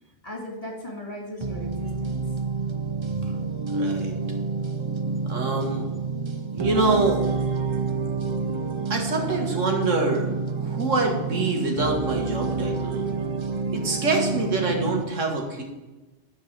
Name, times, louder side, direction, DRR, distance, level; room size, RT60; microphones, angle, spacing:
voice 1, 0.2-2.4, left 1 dB, 30° left, 0 dB, 2.6 m, -37 dB
sound 1, 1.4-15.0, right 4 dB, 35° right, 0.5 m, -28 dB
voice 2, 3.7-4.2 5.3-5.9 6.5-7.2 8.9-10.3 10.6-13.0 13.7-15.6, right 3 dB, 85° right, 2 dB, 2.1 m, -25 dB
9.9 x 4.6 x 7.4 m, 1.1 s
omnidirectional pair, 1.3 m